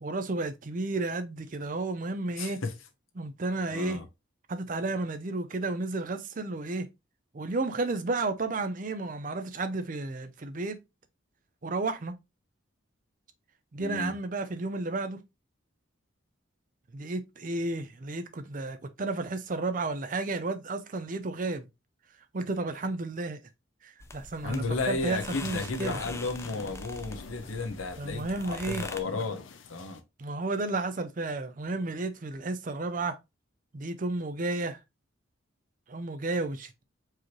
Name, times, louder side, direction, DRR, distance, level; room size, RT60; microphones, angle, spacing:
voice 1, 0.0-2.6 3.2-4.0 4.5-6.9 7.3-10.8 11.6-12.1 13.7-15.2 16.9-21.7 22.3-23.4 23.8-26.0 28.0-28.9 30.2-33.2 33.7-34.8 35.9-36.8, right 2 dB, 40° right, 0.5 m, -32 dB
voice 2, 2.4-2.7 3.7-4.1 13.8-14.1 24.4-29.4 29.7-30.0, left 3 dB, 90° left, 0.9 m, -33 dB
sound 1, 24.0-29.0, left 2 dB, 15° left, 0.4 m, -43 dB
sound 2, 25.0-30.0, left 4 dB, 70° left, 0.6 m, -47 dB
4.7 x 3.1 x 2.9 m
head